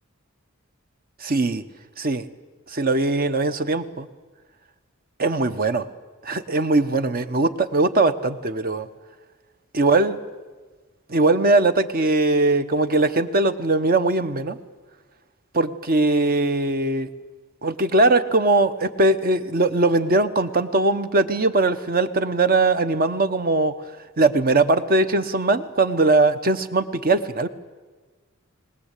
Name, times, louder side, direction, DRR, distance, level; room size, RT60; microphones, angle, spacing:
voice 1, 1.2-1.6 2.0-2.3 2.7-4.1 5.2-5.9 6.2-8.9 9.7-10.2 11.1-14.6 15.5-17.1 17.6-23.7 24.2-27.5, right 2 dB, 45° right, 10 dB, 1.0 m, -20 dB
21.5 x 19.5 x 8.3 m, 1.4 s
head